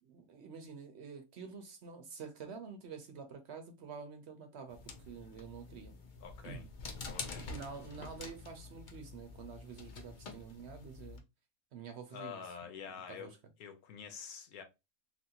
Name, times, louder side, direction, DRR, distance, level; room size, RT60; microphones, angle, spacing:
voice 1, 0.0-6.0 6.4-6.7 7.3-11.2 11.7-12.5 13.1-13.4, right 5 dB, 60° right, 0.8 m, -48 dB
sound 1, 4.7-11.2, left 4 dB, 55° left, 0.5 m, -47 dB
voice 2, 6.2-6.7 7.1-7.5 12.1-13.3 13.6-14.6, left 7 dB, 90° left, 1.2 m, -47 dB
3.0 x 2.6 x 2.7 m
omnidirectional pair, 1.5 m